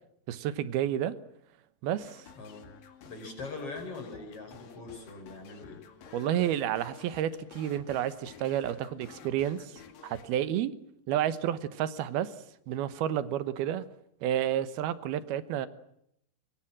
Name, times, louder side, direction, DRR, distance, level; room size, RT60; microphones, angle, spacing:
voice 1, 0.3-1.2 1.8-2.3 6.1-10.7 11.1-12.3 12.7-13.8 14.2-15.7, right 11 dB, 75° right, 14 dB, 3.0 m, -30 dB
sound 1, 2.0-10.4, left 6 dB, 65° left, 3.7 m, -52 dB
voice 2, 2.4-2.7 3.1-5.8, left 3 dB, 35° left, 5 dB, 6.2 m, -42 dB
24.0 x 22.5 x 7.5 m, 0.76 s
omnidirectional pair, 4.5 m